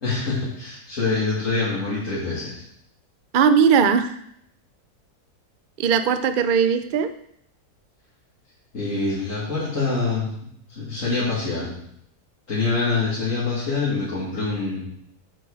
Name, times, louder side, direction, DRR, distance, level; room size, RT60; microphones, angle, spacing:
voice 1, 0.0-2.6 8.7-10.3 10.7-11.7 12.5-14.8, left 3 dB, 55° left, -10 dB, 2.9 m, -25 dB
voice 2, 3.3-4.1 5.8-7.1, right 7 dB, 70° right, 10 dB, 0.4 m, -18 dB
7.8 x 6.3 x 4.9 m, 0.71 s
omnidirectional pair, 1.6 m